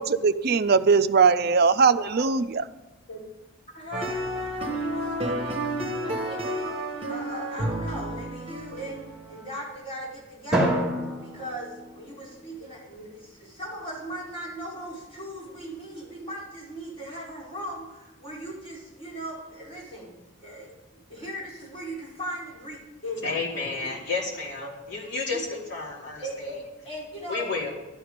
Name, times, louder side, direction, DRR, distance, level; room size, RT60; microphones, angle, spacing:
voice 1, 0.0-2.6, right 5 dB, 50° right, 12 dB, 0.5 m, -20 dB
voice 2, 2.0-2.3 3.1-3.2 3.7-4.2 4.7-5.6 6.0-6.8 7.1-10.7 11.2-23.2 24.6-24.7 26.2-27.5, right 1 dB, 25° left, -6 dB, 5.2 m, -38 dB
sound 1, 3.9-9.5, right 1 dB, 30° right, 1.3 m, -31 dB
Drum, 10.5-12.8, right 1 dB, 5° right, 2.9 m, -28 dB
voice 3, 23.2-26.5 27.3-27.7, left 3 dB, 60° left, -3 dB, 2.7 m, -31 dB
12.0 x 11.5 x 5.1 m, 1.0 s
head